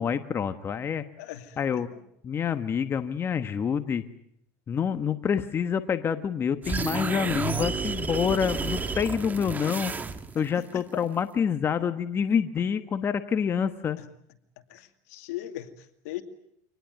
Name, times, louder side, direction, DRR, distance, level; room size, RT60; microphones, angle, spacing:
voice 1, 0.0-1.0 1.6-1.9 2.2-4.0 4.7-9.9 10.3-14.0, left 7 dB, 30° left, 1.3 m, -27 dB
voice 2, 1.2-1.6 1.9-2.0 10.4-10.7 14.0-14.1 14.7-16.2, left 14 dB, 75° left, 2.6 m, -39 dB
sound 1, 6.6-10.5, right 4 dB, 20° right, 1.8 m, -31 dB
25.5 x 19.5 x 9.3 m
supercardioid pair, 120°, 8 cm